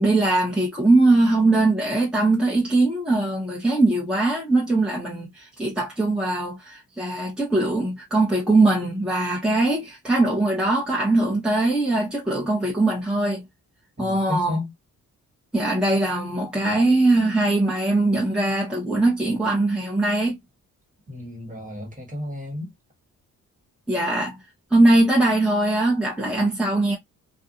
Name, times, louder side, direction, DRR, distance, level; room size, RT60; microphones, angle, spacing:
voice 1, 0.0-13.4 14.0-14.6 15.5-20.4 23.9-24.4 24.7-27.0, right 2 dB, 5° right, 1.0 m, -21 dB
voice 2, 14.0-14.7 21.1-22.7, left 2 dB, 25° right, 1.5 m, -32 dB
2.5 x 2.3 x 2.4 m
cardioid pair, 75°, 34 cm